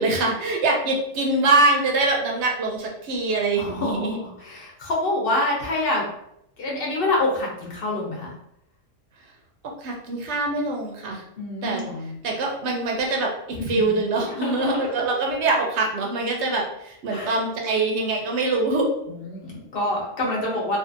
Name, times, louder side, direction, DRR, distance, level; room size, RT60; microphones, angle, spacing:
voice 1, 0.0-4.2 9.2-9.3 9.6-11.2 11.6-11.8 12.2-18.9, right 2 dB, 65° right, 0 dB, 0.8 m, -24 dB
voice 2, 3.6-6.1 6.6-8.3 11.4-12.1 13.6-14.0 14.3-14.9 17.1-17.3 19.1-20.8, left 2 dB, 50° left, -2 dB, 0.9 m, -27 dB
2.6 x 2.4 x 2.5 m, 0.77 s
omnidirectional pair, 1.3 m